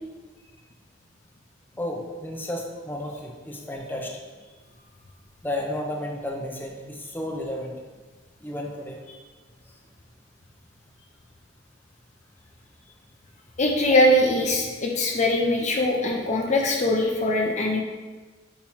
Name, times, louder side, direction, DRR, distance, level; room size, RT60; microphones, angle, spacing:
voice 1, 1.8-4.2 5.4-7.7 8.4-9.0, left 1 dB, 10° left, -1 dB, 0.9 m, -32 dB
voice 2, 13.6-17.8, left 1 dB, 40° left, 0 dB, 0.7 m, -22 dB
8.6 x 3.1 x 5.6 m, 1.3 s
head